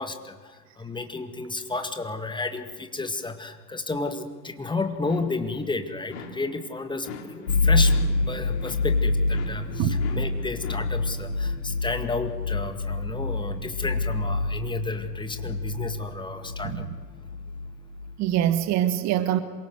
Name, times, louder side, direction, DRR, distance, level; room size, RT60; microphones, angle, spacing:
voice 1, 0.0-8.0 8.3-16.9, left 3 dB, 10° left, 1.9 m, -32 dB
sound 1, 4.9-5.6 6.1-6.7 7.0-11.0, left 5 dB, 45° left, 3.2 m, -42 dB
sound 2, 7.5-18.4, left 3 dB, 80° left, 1.5 m, -27 dB
voice 2, 9.8-10.2 16.6-16.9 18.2-19.4, right 12 dB, 35° right, 1.3 m, -24 dB
27.0 x 23.5 x 7.9 m
figure-of-eight pair, 85°, 49 cm